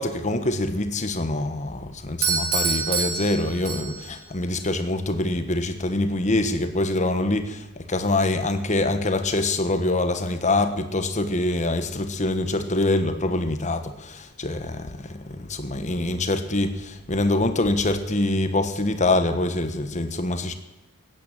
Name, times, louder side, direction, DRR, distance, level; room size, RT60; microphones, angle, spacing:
voice 1, 0.0-7.6 7.9-15.0 15.4-20.5, left 2 dB, 35° left, 9 dB, 1.3 m, -24 dB
Doorbell, 2.2-4.2, right 5 dB, 90° right, 3.2 m, -26 dB
15.0 x 9.4 x 9.1 m, 1.0 s
head